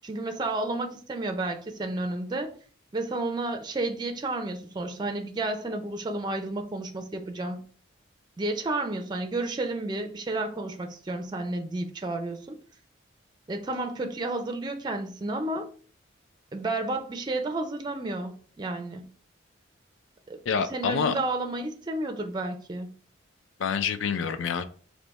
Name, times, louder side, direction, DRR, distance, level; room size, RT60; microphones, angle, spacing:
voice 1, 0.0-2.5 2.9-7.6 8.4-12.6 13.5-15.8 16.5-19.1 20.3-22.9, right 2 dB, 20° right, 0.4 m, -31 dB
voice 2, 20.5-21.1 23.6-24.6, left 6 dB, 80° left, 0.4 m, -27 dB
3.4 x 2.6 x 4.0 m
head